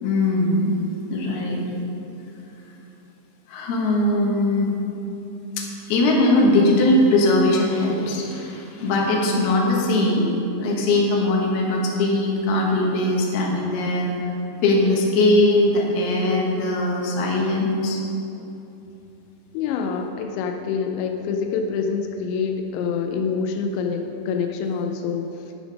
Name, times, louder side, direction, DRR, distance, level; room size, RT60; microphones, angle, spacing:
voice 1, 0.0-0.7 1.1-1.6 3.5-4.7 5.6-10.3 10.6-14.1 14.6-18.0, left 2 dB, 70° left, -2 dB, 3.0 m, -20 dB
voice 2, 19.5-25.3, left 5 dB, 90° left, 4 dB, 2.9 m, -26 dB
12.5 x 5.1 x 5.2 m, 2.9 s
omnidirectional pair, 5.1 m